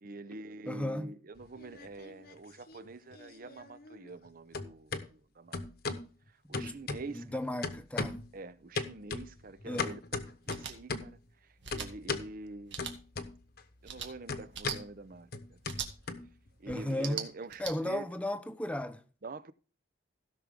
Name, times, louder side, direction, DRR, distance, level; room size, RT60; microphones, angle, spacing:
voice 1, 0.0-5.6 6.5-7.6 8.3-10.0 10.5-11.2 11.7-12.8 13.8-15.6 16.6-18.1 19.2-19.5, right 3 dB, 50° right, 0.7 m, -45 dB
voice 2, 0.7-1.1 6.6-6.8 7.1-8.2 9.7-10.0 16.7-17.2 17.6-19.0, left 1 dB, 5° left, 0.8 m, -35 dB
sound 1, 1.4-2.4 2.7-4.3 4.5-5.0 5.5-6.1 6.5-7.3 7.6-8.3 8.7-11.2 11.7-12.3 12.8-13.6 13.9-16.7, left 4 dB, 60° left, 1.1 m, -38 dB
sound 2, 10.5-10.7 11.6-11.9 12.7-12.9 13.8-14.1 14.5-14.8 15.7-15.9 16.9-17.7, right 8 dB, 85° right, 2.0 m, -39 dB
16.5 x 6.1 x 3.6 m
head